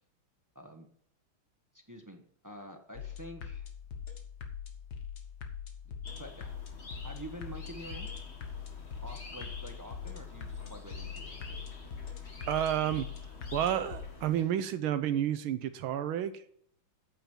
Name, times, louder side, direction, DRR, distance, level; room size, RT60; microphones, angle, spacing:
voice 1, 0.5-0.9 1.9-3.7 5.8-6.6 7.0-8.1 9.0-11.7, equal, 15° right, 5 dB, 0.7 m, -47 dB
sound 1, 2.9-14.1, left 7 dB, 55° left, 1.8 m, -43 dB
sound 2, 6.0-14.4, left 2 dB, 35° left, 1.8 m, -48 dB
voice 2, 12.5-13.1 13.5-16.4, right 11 dB, 90° right, 11 dB, 1.6 m, -30 dB
8.9 x 8.8 x 5.4 m, 0.64 s
omnidirectional pair, 2.2 m